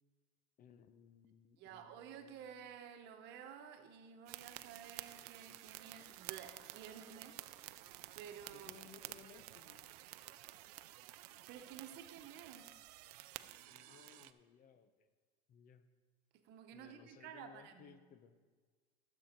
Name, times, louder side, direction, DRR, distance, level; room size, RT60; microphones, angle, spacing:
voice 1, 0.6-2.5 8.5-9.8 13.6-15.1 15.5-15.8 16.7-18.4, left 7 dB, 45° left, 11 dB, 0.7 m, -61 dB
voice 2, 1.6-7.8 8.1-8.8 11.1-12.8 16.3-18.0, right 8 dB, 60° right, 7 dB, 1.1 m, -53 dB
sound 1, 4.3-14.3, right 16 dB, 85° right, 0.5 m, -52 dB
12.5 x 7.8 x 4.5 m, 1.5 s
supercardioid pair, 110°, 20 cm